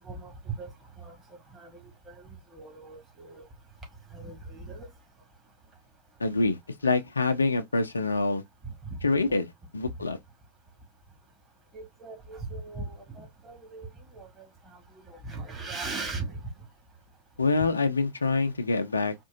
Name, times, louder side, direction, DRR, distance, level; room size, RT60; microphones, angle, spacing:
voice 1, 0.0-3.5 4.1-4.9 8.6-9.0 9.3-9.4 11.7-16.7, right 3 dB, 20° right, 1.9 m, -40 dB
voice 2, 6.2-8.4 9.0-10.2 17.4-19.2, left 3 dB, 75° left, 0.6 m, -26 dB
4.4 x 2.7 x 2.6 m
figure-of-eight pair, 90°, 0 cm